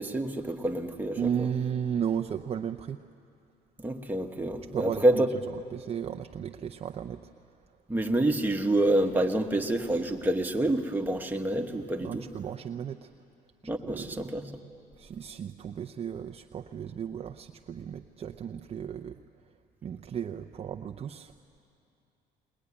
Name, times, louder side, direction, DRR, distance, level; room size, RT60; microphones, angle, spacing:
voice 1, 0.0-1.2 3.8-5.3 7.9-12.2 13.6-14.5, right 1 dB, 10° right, 2 dB, 1.5 m, -27 dB
voice 2, 1.2-3.0 4.7-5.2 5.5-7.3 7.7-7.8 12.0-13.1 13.6-14.3 15.0-19.5 19.8-21.3, right 8 dB, 35° right, 5 dB, 0.6 m, -35 dB
21.5 x 20.5 x 9.9 m, 2.6 s
cardioid pair, 110°, 17 cm